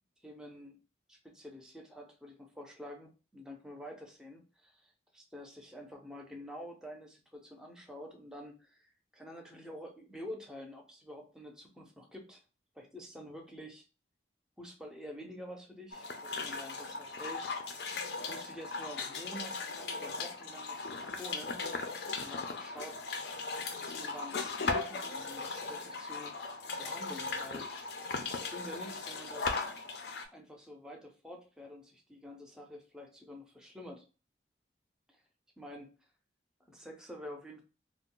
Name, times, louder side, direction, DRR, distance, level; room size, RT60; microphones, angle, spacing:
voice 1, 0.2-0.8 1.1-12.4 12.7-13.8 14.6-17.5 18.3-21.6 22.2-23.0 23.8-26.3 26.8-27.7 28.3-29.7 30.3-34.0 35.1-35.2 35.6-35.9 36.6-37.6, equal, 5° right, 2 dB, 0.4 m, -48 dB
sound 1, 15.9-30.2, left 4 dB, 70° left, 0.5 m, -38 dB
2.4 x 2.1 x 3.6 m, 0.34 s
head